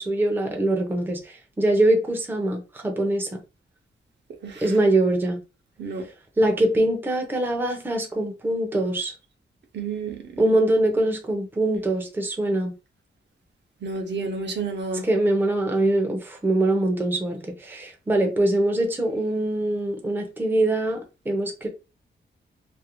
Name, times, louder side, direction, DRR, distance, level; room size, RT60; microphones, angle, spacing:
voice 1, 0.0-3.4 4.6-5.4 6.4-9.1 10.4-12.7 15.0-21.0 21.3-21.7, right 1 dB, 10° right, 0.5 m, -23 dB
voice 2, 9.7-10.2 13.8-15.1, right 4 dB, 60° right, 0.6 m, -30 dB
2.5 x 2.0 x 2.8 m
wide cardioid pair, 145°, 20 cm